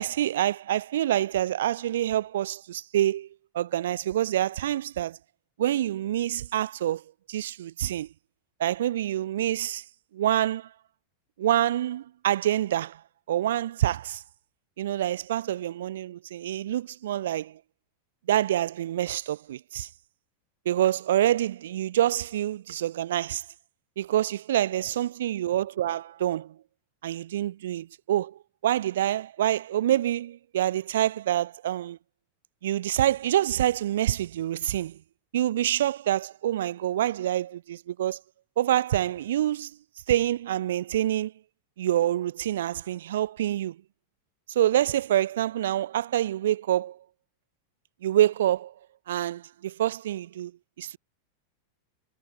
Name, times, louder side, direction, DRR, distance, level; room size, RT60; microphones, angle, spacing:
voice 1, 0.0-3.3 3.5-5.2 5.6-7.0 7.3-8.1 8.6-9.8 10.1-10.7 11.4-13.0 13.3-14.2 14.8-17.6 18.3-19.9 20.7-23.4 24.0-26.5 27.0-32.0 32.6-35.0 35.3-38.2 38.6-39.7 40.1-41.3 41.8-43.8 44.5-47.0 48.0-48.7 49.1-50.5 50.8-51.0, right 12 dB, 60° right, 0.4 m, -26 dB
figure-of-eight pair, 90°, 0 cm